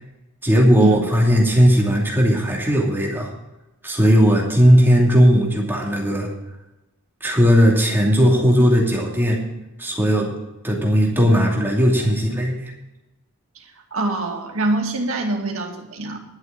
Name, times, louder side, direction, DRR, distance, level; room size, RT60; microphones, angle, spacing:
voice 1, 0.4-3.3 3.8-6.3 7.2-9.4 9.8-10.3 10.6-12.7, equal, 10° right, -2 dB, 2.7 m, -17 dB
voice 2, 13.6-16.2, right 2 dB, 70° right, 1 dB, 2.3 m, -25 dB
11.5 x 6.9 x 8.6 m, 0.98 s
head